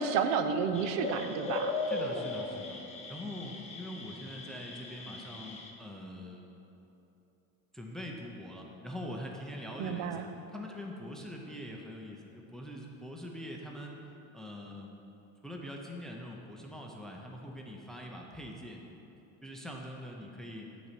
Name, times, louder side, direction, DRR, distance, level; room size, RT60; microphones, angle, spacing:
voice 1, 0.0-1.7 9.8-10.3, right 6 dB, 70° right, 8 dB, 0.7 m, -31 dB
sound 1, 0.7-5.7, left 3 dB, 20° left, 0.9 m, -38 dB
voice 2, 1.8-2.8 3.1-6.5 7.7-14.0 14.3-15.0 15.4-18.9 19.4-20.9, left 1 dB, ahead, 0 dB, 0.5 m, -43 dB
11.5 x 4.1 x 7.3 m, 3.0 s
cardioid pair, 165°, 35 cm